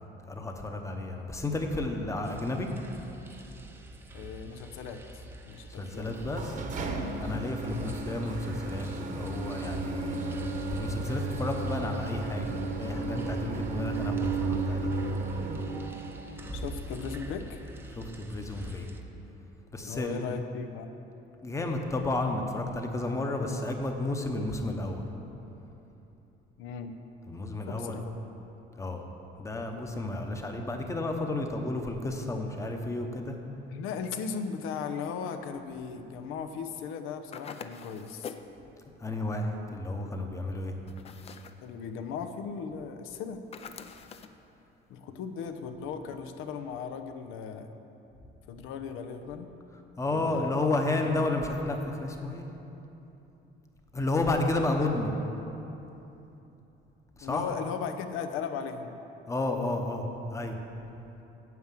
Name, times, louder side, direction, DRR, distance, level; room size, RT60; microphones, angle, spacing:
voice 1, 0.3-2.7 5.7-6.6 7.2-10.2 10.7-14.9 16.4-16.5 17.9-18.9 19.7-20.3 21.4-25.0 27.3-28.0 28.8-29.0 29.4-33.4 39.0-40.7 50.0-52.5 53.9-55.1 57.2-57.4 59.3-60.6, left 2 dB, 15° left, 4 dB, 0.9 m, -32 dB
sound 1, 2.2-19.0, right 1 dB, 10° right, 0.6 m, -45 dB
voice 2, 4.1-5.0 5.5-6.1 7.6-8.0 16.5-17.6 19.8-20.9 26.6-26.9 27.7-28.1 33.7-38.4 41.6-43.4 44.9-47.7 48.5-49.5 50.1-50.6 51.0-51.5 57.2-59.0, left 6 dB, 85° left, 7 dB, 0.8 m, -37 dB
sound 2, 6.0-16.3, right 3 dB, 40° right, 1.0 m, -33 dB
sound 3, 37.3-38.5 40.9-41.6 43.5-44.4, left 6 dB, 30° left, 0.4 m, -44 dB
9.4 x 7.6 x 7.5 m, 3.0 s
cardioid pair, 160°, 21 cm